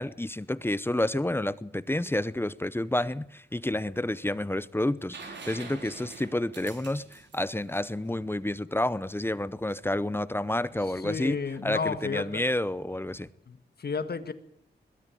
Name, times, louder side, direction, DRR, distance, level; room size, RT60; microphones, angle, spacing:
voice 1, 0.0-13.3, left 1 dB, 10° left, 0.8 m, -30 dB
sound 1, 5.1-8.8 10.7-10.8, right 4 dB, 90° right, 4.7 m, -45 dB
voice 2, 11.0-12.4 13.5-14.3, left 5 dB, 65° left, 1.7 m, -32 dB
21.5 x 13.5 x 9.1 m
wide cardioid pair, 95°, 18 cm